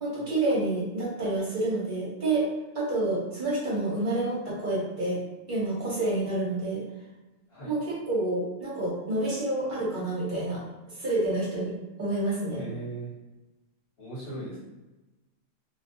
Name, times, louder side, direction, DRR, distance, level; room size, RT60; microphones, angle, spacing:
voice 1, 0.0-2.5 2.7-5.2 5.5-6.8 7.7-11.7 12.0-12.6, right 2 dB, 45° right, -5 dB, 0.7 m, -28 dB
voice 2, 12.5-13.1 14.0-14.6, right 2 dB, 50° left, -9 dB, 1.0 m, -38 dB
2.4 x 2.2 x 2.5 m, 1.1 s
omnidirectional pair, 1.4 m